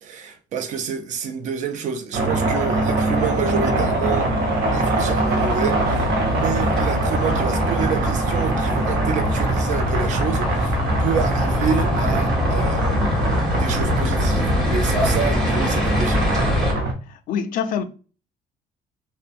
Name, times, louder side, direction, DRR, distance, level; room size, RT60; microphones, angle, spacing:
voice 1, 0.0-4.3 4.7-13.3 13.6-16.3, right 7 dB, 50° right, 0.4 m, -28 dB
sound 1, 2.1-16.9, right 2 dB, 90° right, 0.7 m, -23 dB
sound 2, 2.3-16.7, left 2 dB, 5° left, 0.8 m, -25 dB
voice 2, 17.1-17.8, left 7 dB, 65° left, 0.4 m, -25 dB
2.7 x 2.2 x 2.4 m
cardioid pair, 160°, 15 cm